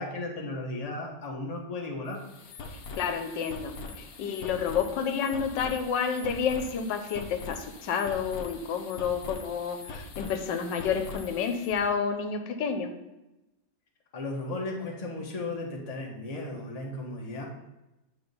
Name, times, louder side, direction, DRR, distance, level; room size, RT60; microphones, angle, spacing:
voice 1, 0.0-2.2 14.1-17.5, left 2 dB, 25° left, -1 dB, 1.0 m, -35 dB
sound 1, 2.1-11.8, left 3 dB, 60° left, 1.2 m, -43 dB
voice 2, 3.0-12.9, left 6 dB, 85° left, 7 dB, 1.4 m, -30 dB
8.9 x 3.6 x 5.3 m, 0.98 s
omnidirectional pair, 1.9 m